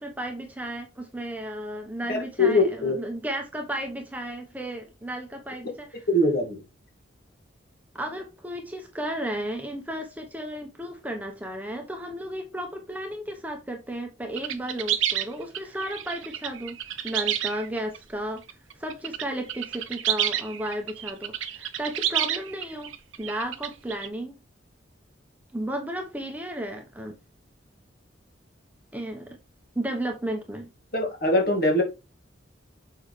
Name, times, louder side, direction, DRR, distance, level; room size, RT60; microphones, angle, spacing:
voice 1, 0.0-6.1 7.9-16.8 17.0-18.4 18.8-22.9 23.2-24.4 25.5-27.2 28.9-29.4 29.7-30.7, right 1 dB, 10° right, 1.0 m, -33 dB
voice 2, 2.1-2.9 6.1-6.6 30.9-31.8, left 2 dB, 50° left, 2.2 m, -22 dB
sound 1, 14.4-18.0 18.5-19.2 19.5-24.1, right 11 dB, 85° right, 0.8 m, -29 dB
7.1 x 5.5 x 3.3 m
head